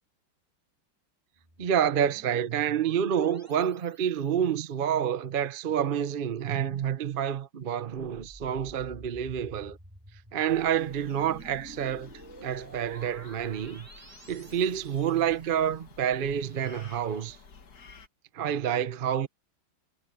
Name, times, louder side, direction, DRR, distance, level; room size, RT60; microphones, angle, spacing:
sound 1, 1.4-4.5 7.8-15.5, right 1 dB, 5° right, 2.5 m, -51 dB
voice 1, 1.6-9.8 10.3-12.1 12.4-13.9 14.3-17.4 18.3-19.3, right 9 dB, 55° right, 0.6 m, -28 dB
sound 2, 10.5-18.1, left 5 dB, 50° left, 2.1 m, -52 dB
omnidirectional pair, 2.2 m